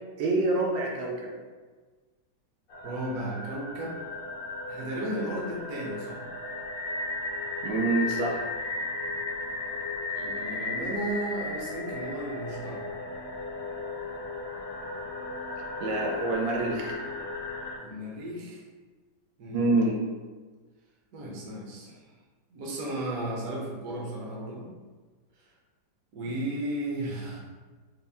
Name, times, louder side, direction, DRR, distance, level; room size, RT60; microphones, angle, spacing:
voice 1, 0.2-1.3 7.6-8.5 15.8-17.0 19.5-20.0, right 2 dB, 90° right, -1 dB, 1.4 m, -26 dB
sound 1, 2.7-17.8, left 3 dB, 65° left, 1.0 m, -35 dB
voice 2, 2.8-4.0 4.7-6.2 10.1-12.8 17.8-18.6 19.4-19.7 21.1-22.1 22.5-24.7 25.4-25.5 26.1-27.4, right 1 dB, 60° right, -3 dB, 1.1 m, -35 dB
4.1 x 2.1 x 3.4 m, 1.4 s
omnidirectional pair, 2.0 m